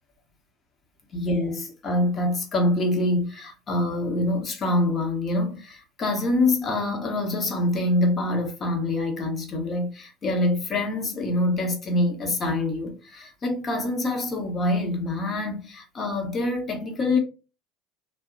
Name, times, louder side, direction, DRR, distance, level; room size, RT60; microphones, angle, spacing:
voice 1, 1.1-17.2, left 1 dB, 35° left, 0.9 m, -25 dB
2.7 x 2.1 x 2.5 m
hypercardioid pair, 80°, 0 cm